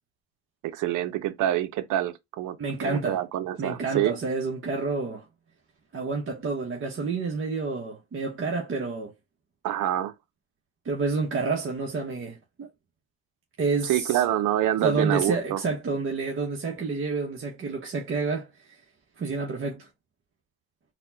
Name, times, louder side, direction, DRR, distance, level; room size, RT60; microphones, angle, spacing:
voice 1, 0.6-2.6 2.8-4.1 9.6-10.1 13.8-15.6, right 13 dB, 85° right, 0.6 m, -26 dB
voice 2, 2.6-3.2 3.6-5.2 5.9-9.1 10.8-12.7 13.6-14.2 14.8-18.5 19.2-19.9, right 4 dB, 40° right, 0.9 m, -29 dB
4.0 x 2.1 x 2.6 m
cardioid pair, 90°, 30 cm